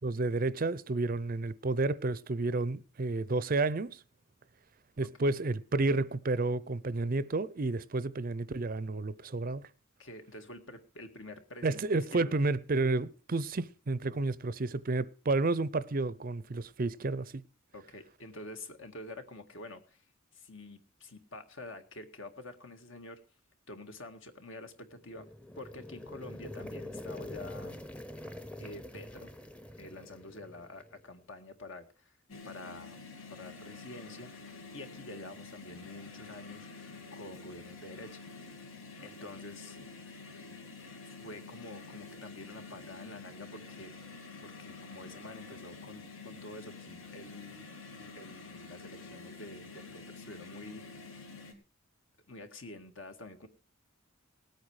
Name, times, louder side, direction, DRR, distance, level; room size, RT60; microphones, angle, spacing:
voice 1, 0.0-4.0 5.0-9.6 11.6-17.4, right 3 dB, 40° right, 0.6 m, -31 dB
voice 2, 10.0-12.4 17.7-20.0 20.3-23.2 23.7-25.3 25.6-27.8 28.6-29.3 29.8-32.1 32.4-33.0 33.3-38.2 39.0-39.8 41.1-43.9 44.4-47.6 48.0-51.2 52.3-53.5, left 2 dB, 65° left, 1.9 m, -48 dB
sound 1, 25.0-31.0, left 1 dB, 5° left, 0.8 m, -45 dB
sound 2, 32.3-51.5, left 4 dB, 85° left, 2.9 m, -48 dB
19.0 x 8.8 x 4.9 m
head